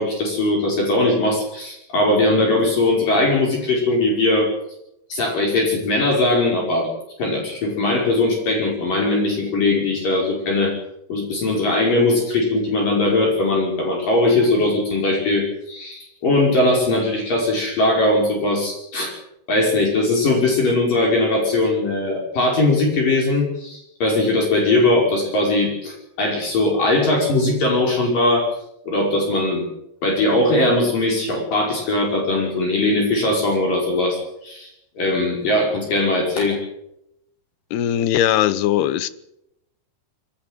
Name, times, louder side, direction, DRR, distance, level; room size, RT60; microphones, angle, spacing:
voice 1, 0.0-4.5 5.1-6.9 7.2-10.7 11.1-19.1 19.5-28.5 28.9-29.7 30.0-34.7 35.0-36.6, left 2 dB, 55° left, 7.0 m, -20 dB
voice 2, 37.7-39.1, left 11 dB, 80° left, 3.0 m, -19 dB
22.5 x 17.0 x 9.2 m
omnidirectional pair, 4.6 m